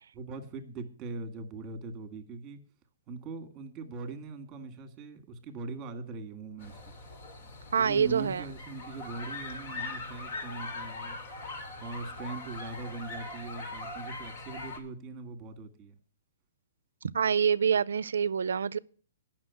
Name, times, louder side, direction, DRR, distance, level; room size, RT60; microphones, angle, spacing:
voice 1, 0.1-2.6 3.1-6.8 7.8-11.2 11.8-16.0, right 3 dB, 20° right, 1.8 m, -41 dB
sound 1, 6.6-14.8, left 2 dB, 45° left, 2.5 m, -41 dB
voice 2, 7.7-8.4 17.1-18.8, right 7 dB, 85° right, 0.5 m, -26 dB
9.6 x 6.1 x 8.2 m
hypercardioid pair, 160°, 0 cm